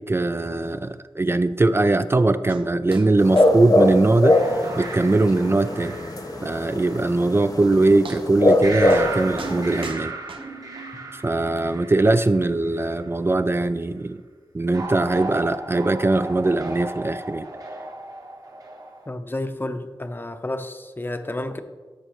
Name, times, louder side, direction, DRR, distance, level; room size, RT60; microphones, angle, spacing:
voice 1, 0.0-4.4 4.8-6.0 6.4-10.1 11.1-14.2 14.5-17.5, right 2 dB, 30° right, 12 dB, 0.3 m, -21 dB
sound 1, 2.5-2.7 2.9-3.1 3.4-3.5 3.8-3.9 4.3-4.4 4.8-4.9 5.4-5.5 7.2-7.3 7.6-7.7 8.0-8.6 8.9-9.1 9.4-10.9 11.6-11.7, right 4 dB, 85° right, 0.7 m, -40 dB
sound 2, 3.2-9.9, left 1 dB, 45° left, 1.1 m, -22 dB
sound 3, 4.3-7.9 8.6-13.1 14.7-19.1, right 2 dB, 45° right, 1.2 m, -35 dB
voice 2, 19.1-21.6, left 1 dB, 25° left, 8 dB, 0.7 m, -30 dB
13.0 x 6.3 x 3.0 m, 1.4 s
wide cardioid pair, 60°, 9 cm